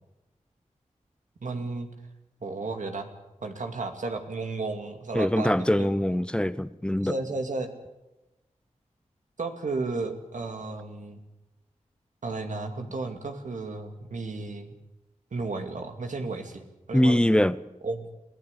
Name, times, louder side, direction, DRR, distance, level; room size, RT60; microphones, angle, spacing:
voice 1, 1.4-1.9 2.4-3.1 3.4-5.9 7.0-7.7 9.4-11.2 12.2-14.7 15.3-16.6 16.9-17.4 17.8-18.1, right 3 dB, 75° right, 2.5 m, -33 dB
voice 2, 5.1-7.1 16.9-17.6, left 1 dB, 5° left, 0.8 m, -23 dB
23.0 x 16.0 x 8.3 m
wide cardioid pair, 80°, 13 cm